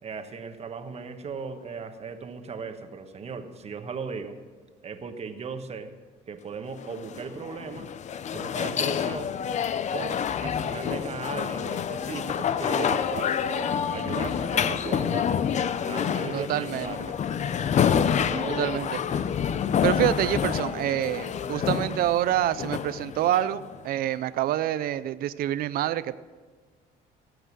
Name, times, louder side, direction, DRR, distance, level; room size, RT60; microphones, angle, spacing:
voice 1, 0.0-4.4 4.8-5.9 6.3-7.9 8.3-9.3 9.9-15.3 15.8-17.2 18.0-18.7, right 5 dB, 40° right, 7 dB, 1.3 m, -37 dB
sound 1, 6.8-23.8, left 8 dB, 45° left, 0.6 m, -28 dB
voice 2, 16.3-16.9 18.6-18.9 19.8-26.2, right 12 dB, 60° right, 15 dB, 0.5 m, -27 dB
17.5 x 7.9 x 6.2 m, 1.4 s
cardioid pair, 110°, 17 cm